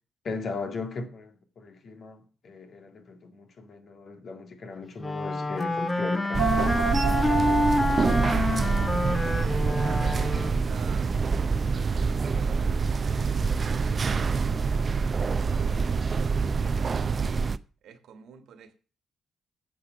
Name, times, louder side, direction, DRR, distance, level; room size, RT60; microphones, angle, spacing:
voice 1, 0.2-6.5, left 3 dB, 60° left, 2.0 m, -37 dB
Wind instrument woodwind instrument, 5.0-10.7, left 2 dB, 25° left, 1.3 m, -27 dB
sound 1, 6.3-17.6, right 5 dB, 45° right, 0.6 m, -26 dB
sound 2, 6.4-11.1, right 13 dB, 90° right, 0.6 m, -35 dB
voice 2, 9.1-11.1 11.7-17.2 17.8-18.7, right 7 dB, 70° right, 1.5 m, -48 dB
9.5 x 7.0 x 6.2 m
hypercardioid pair, 45°, 0 cm